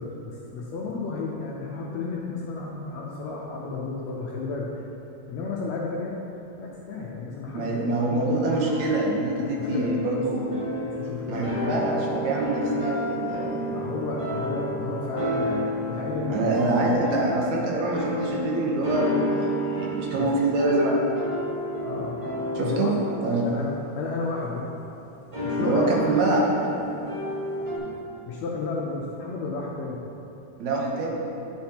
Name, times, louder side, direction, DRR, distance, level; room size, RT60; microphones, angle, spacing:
voice 1, 0.0-4.8 5.3-6.2 6.6-8.2 9.6-10.3 10.9-11.9 13.7-16.8 20.2-20.3 21.8-22.2 22.6-23.0 23.4-24.7 25.4-26.2 27.6-30.0, left 3 dB, 75° left, -3 dB, 1.6 m, -32 dB
voice 2, 7.5-10.4 11.3-13.6 16.3-21.0 22.6-22.9 23.2-23.5 25.6-26.4 30.6-31.2, right 2 dB, 70° right, -2 dB, 2.1 m, -25 dB
sound 1, 8.2-24.7 25.3-27.8, equal, 25° right, 0.6 m, -31 dB
9.4 x 6.1 x 2.8 m, 2.9 s
omnidirectional pair, 3.5 m